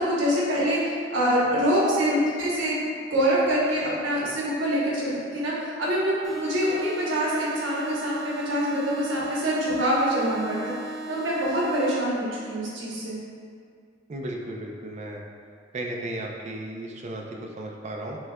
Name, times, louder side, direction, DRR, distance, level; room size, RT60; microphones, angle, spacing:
voice 1, 0.0-2.8 3.1-10.7 11.1-13.2, equal, 75° right, -6 dB, 1.0 m, -25 dB
sound 1, 6.2-12.2, right 2 dB, 60° left, 0.7 m, -37 dB
voice 2, 14.1-15.2 15.7-18.2, right 1 dB, 40° right, 0 dB, 0.4 m, -35 dB
6.0 x 2.3 x 2.2 m, 2.2 s
head